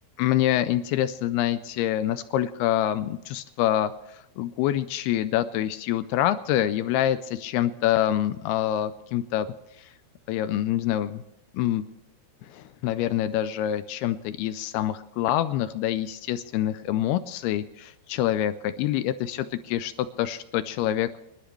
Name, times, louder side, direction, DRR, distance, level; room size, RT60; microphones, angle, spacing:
voice 1, 0.2-9.5 9.8-9.9 10.3-11.2 11.5-11.8 12.4-21.2, left 12 dB, 80° left, 12 dB, 2.3 m, -26 dB
25.5 x 11.5 x 3.2 m, 0.90 s
omnidirectional pair, 5.0 m